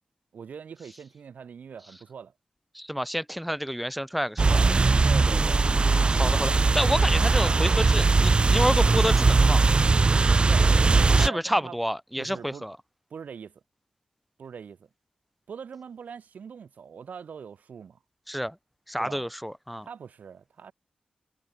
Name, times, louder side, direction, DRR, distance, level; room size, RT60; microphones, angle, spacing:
voice 1, 0.3-2.3 5.0-5.6 8.8-9.0 10.3-11.8 12.2-12.6 13.1-13.5 14.4-14.8 15.5-18.0 19.0-19.3 19.8-20.7, right 6 dB, 85° right, 6.0 m, -42 dB
voice 2, 2.7-4.6 5.3-9.7 11.2-12.8 18.3-18.5 18.9-19.9, equal, ahead, 2.2 m, -29 dB
sound 1, 4.4-11.3, right 3 dB, 40° right, 0.4 m, -20 dB
cardioid pair, 60°, 3 cm